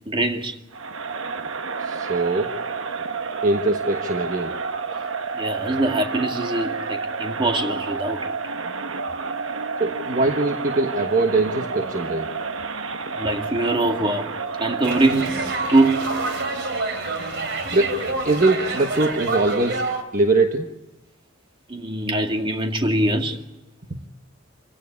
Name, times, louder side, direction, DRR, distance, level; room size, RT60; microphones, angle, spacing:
voice 1, 0.1-0.6 5.3-8.3 13.1-14.3 14.6-15.4 15.7-16.2 21.7-23.4, right 2 dB, 25° right, 2.2 m, -23 dB
Crowd, 0.7-16.9, right 4 dB, 90° right, 1.1 m, -30 dB
voice 2, 1.8-2.5 3.4-4.5 9.8-12.3 17.7-19.9 20.1-20.7 23.9-24.0, right 2 dB, 40° right, 1.3 m, -22 dB
sound 1, 14.8-20.0, right 3 dB, 65° right, 3.4 m, -27 dB
27.0 x 16.5 x 9.8 m
head